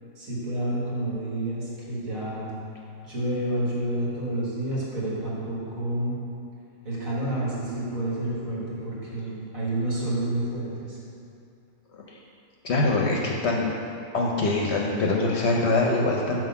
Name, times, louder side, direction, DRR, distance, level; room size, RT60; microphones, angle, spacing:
voice 1, 0.2-2.5 3.0-6.2 6.8-11.0, right 1 dB, 70° right, -7 dB, 2.1 m, -29 dB
voice 2, 12.6-13.7 14.1-16.4, left 2 dB, 60° left, -1 dB, 0.8 m, -23 dB
5.9 x 4.6 x 5.6 m, 2.5 s
omnidirectional pair, 1.5 m